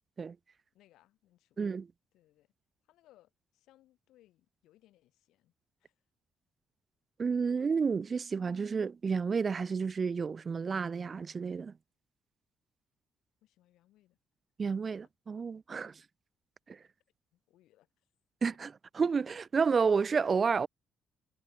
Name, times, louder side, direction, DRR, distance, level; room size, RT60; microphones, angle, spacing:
voice 1, 0.7-1.7 2.1-2.5 2.8-5.5 5.8-6.0 13.4-14.2 17.3-18.1, left 15 dB, 90° left, 7.6 m, -66 dB
voice 2, 7.2-11.7 14.6-15.9 16.7-16.8 18.4-18.7 19.0-20.7, right 5 dB, 40° right, 0.4 m, -30 dB
cardioid pair, 90°, 0 cm